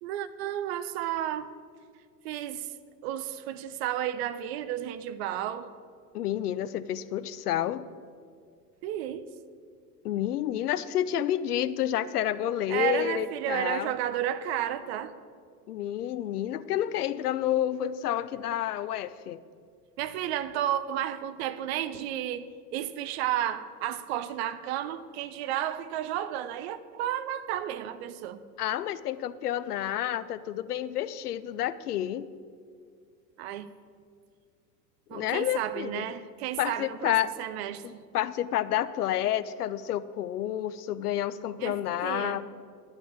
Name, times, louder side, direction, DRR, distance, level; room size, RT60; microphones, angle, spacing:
voice 1, 0.0-1.5 2.2-2.7 3.0-5.7 8.8-9.2 12.7-15.1 20.0-22.5 22.7-28.4 33.4-33.7 35.1-38.0 41.6-42.4, right 11 dB, 40° right, 0.6 m, -32 dB
voice 2, 6.1-7.8 10.0-13.9 15.7-19.4 28.6-32.3 35.1-36.1 36.6-37.3 37.8-42.5, left 11 dB, 65° left, 0.6 m, -29 dB
11.0 x 5.3 x 8.6 m
figure-of-eight pair, 85°, 49 cm